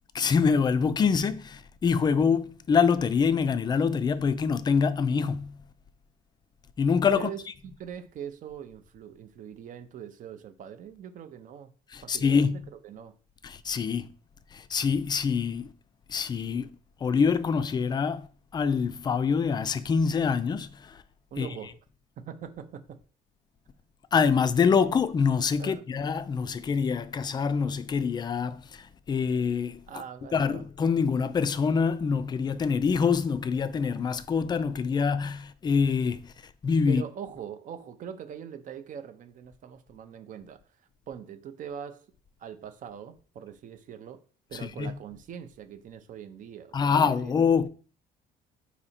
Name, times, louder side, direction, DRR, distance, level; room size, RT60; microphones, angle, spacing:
voice 1, 0.1-5.6 6.8-7.3 11.9-12.6 13.4-14.1 14.5-15.7 16.1-16.7 17.0-18.3 18.5-21.0 21.4-21.5 24.1-29.8 30.3-36.2 36.6-37.0 44.8-45.0 46.7-47.7, left 6 dB, 25° left, 0.3 m, -25 dB
voice 2, 7.2-11.7 12.0-13.1 21.3-21.8 22.3-22.8 25.6-25.9 29.9-30.6 36.9-40.6 41.1-42.1 42.4-44.2 44.5-47.3, right 8 dB, 50° right, 0.5 m, -42 dB
4.0 x 2.8 x 4.2 m
cardioid pair, 110°, 17 cm